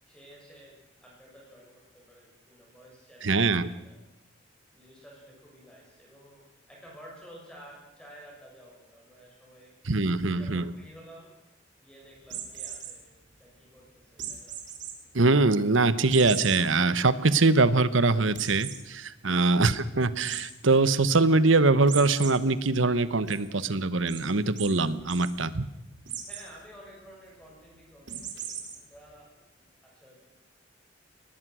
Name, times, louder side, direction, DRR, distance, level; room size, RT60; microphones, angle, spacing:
voice 1, 0.1-4.0 4.7-9.7 10.2-11.3 11.8-13.1 13.4-14.5 26.3-30.3, equal, 5° left, -3 dB, 7.2 m, -52 dB
voice 2, 3.2-3.7 9.9-10.6 15.1-25.7, right 3 dB, 75° right, 15 dB, 1.1 m, -23 dB
sound 1, 12.2-12.9 14.2-14.9 15.4-15.5 16.1-16.6 17.1-17.2 17.5-17.6 18.3-18.8 20.2-20.4 21.9-22.3 22.7-23.3 24.1-24.2 24.6-24.7 25.0-25.3 26.1-26.5 28.1-28.8, right 9 dB, 60° right, 3.7 m, -37 dB
22.5 x 19.5 x 6.3 m, 0.95 s
head